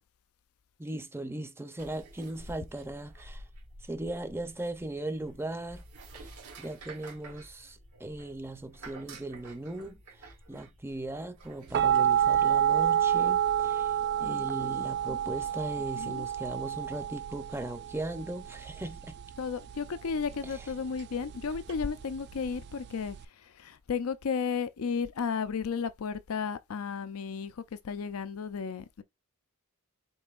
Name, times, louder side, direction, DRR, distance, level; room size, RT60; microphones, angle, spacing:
voice 1, 0.8-3.4 3.9-5.8 6.1-19.1 20.4-20.7, right 1 dB, 10° right, 0.6 m, -38 dB
sound 1, 1.8-11.8, right 2 dB, 90° right, 2.2 m, -50 dB
sound 2, 11.7-23.2, right 10 dB, 50° right, 0.3 m, -29 dB
voice 2, 14.2-14.7 15.1-15.2 16.0-16.2 19.4-23.2 23.6-27.5 27.8-29.0, left 6 dB, 70° left, 0.5 m, -33 dB
5.4 x 3.8 x 2.5 m
head